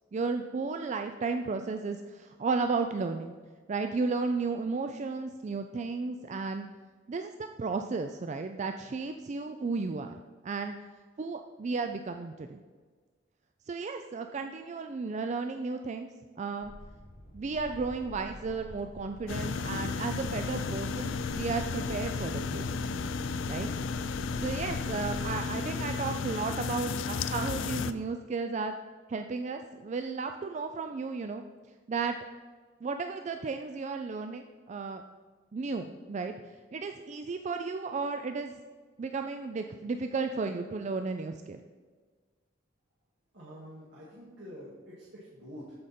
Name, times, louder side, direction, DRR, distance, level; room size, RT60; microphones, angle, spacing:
voice 1, 0.1-3.3 3.7-6.7 7.1-10.2 10.4-10.7 11.2-12.6 13.7-16.1 16.4-16.7 17.3-22.8 23.5-23.7 24.4-28.7 29.1-31.4 31.9-32.2 32.8-35.0 35.5-36.3 36.7-38.5 39.0-41.6, right 4 dB, 35° right, 6 dB, 0.3 m, -34 dB
sound 1, 16.6-25.4, left 1 dB, 45° left, 1.5 m, -46 dB
sound 2, 19.3-27.9, left 5 dB, 70° left, 0.4 m, -33 dB
voice 2, 43.3-45.8, equal, 60° right, -8 dB, 2.1 m, -47 dB
13.5 x 5.2 x 4.3 m, 1.5 s
head